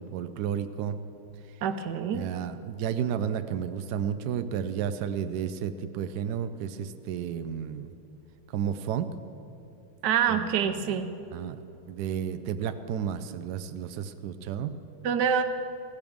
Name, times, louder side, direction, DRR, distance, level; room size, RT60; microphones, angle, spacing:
voice 1, 0.1-1.0 2.1-7.9 8.5-9.1 10.3-10.9 11.3-11.6 11.9-14.8, right 8 dB, 85° right, 10 dB, 0.8 m, -32 dB
voice 2, 1.6-2.2 10.0-11.1 15.0-15.4, right 7 dB, 65° right, 9 dB, 1.1 m, -26 dB
16.5 x 15.0 x 3.6 m, 2.6 s
omnidirectional pair, 2.3 m